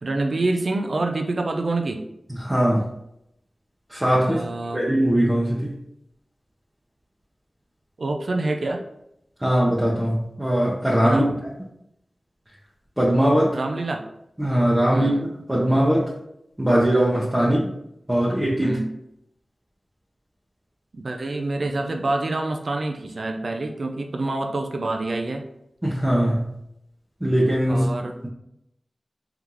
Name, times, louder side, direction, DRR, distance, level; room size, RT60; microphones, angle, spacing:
voice 1, 0.0-2.0 4.2-4.8 8.0-8.8 11.0-11.4 13.5-14.0 14.9-15.2 17.4-17.6 18.6-18.9 20.9-25.4 27.7-28.1, right 2 dB, 65° right, 3 dB, 0.5 m, -27 dB
voice 2, 2.3-2.9 3.9-4.5 4.7-5.7 9.4-11.2 13.0-13.6 14.4-15.1 15.5-16.1 16.6-17.6 18.1-18.8 25.8-26.5 27.2-27.9, equal, 15° right, -5 dB, 0.8 m, -20 dB
3.8 x 3.4 x 2.9 m, 0.79 s
wide cardioid pair, 75°, 0 cm